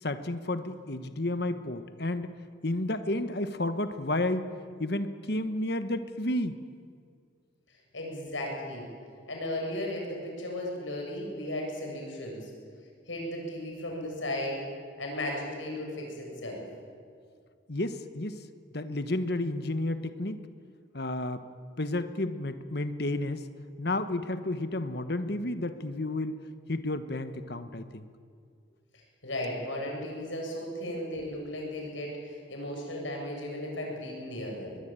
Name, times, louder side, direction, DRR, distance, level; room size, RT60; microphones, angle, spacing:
voice 1, 0.0-2.4 2.6-6.6 17.7-18.4 18.7-20.4 20.9-21.4 21.8-23.5 23.8-26.4 26.7-28.0, left 1 dB, 55° left, 10 dB, 1.2 m, -31 dB
voice 2, 7.9-8.8 9.3-12.5 13.1-14.6 15.0-16.7 29.2-34.8, left 1 dB, 80° left, 0 dB, 7.6 m, -35 dB
23.0 x 21.0 x 9.0 m, 2.1 s
head